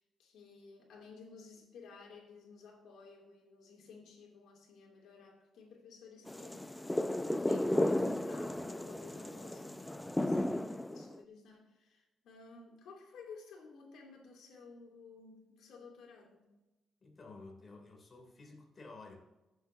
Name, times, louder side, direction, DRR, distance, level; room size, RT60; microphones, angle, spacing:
voice 1, 0.0-6.6 7.2-16.5, left 4 dB, 75° left, 0 dB, 2.9 m, -55 dB
sound 1, 6.3-11.2, left 1 dB, 10° left, 0.6 m, -34 dB
voice 2, 17.0-19.2, left 3 dB, 35° left, 1 dB, 3.1 m, -52 dB
15.5 x 7.9 x 2.8 m, 1.0 s
cardioid pair, 90°, 0 cm